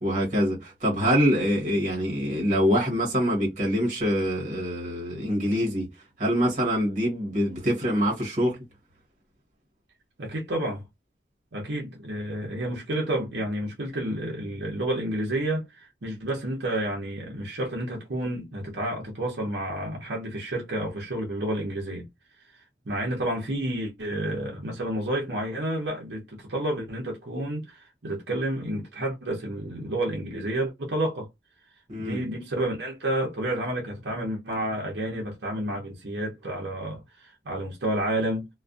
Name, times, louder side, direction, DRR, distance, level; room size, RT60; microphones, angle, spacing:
voice 1, 0.0-5.9 6.2-8.6 31.9-32.2, equal, 45° right, 1.0 m, -25 dB
voice 2, 10.2-10.8 11.5-22.1 22.8-31.3 32.0-38.5, right 1 dB, 70° right, 0.7 m, -30 dB
2.5 x 2.2 x 2.3 m
head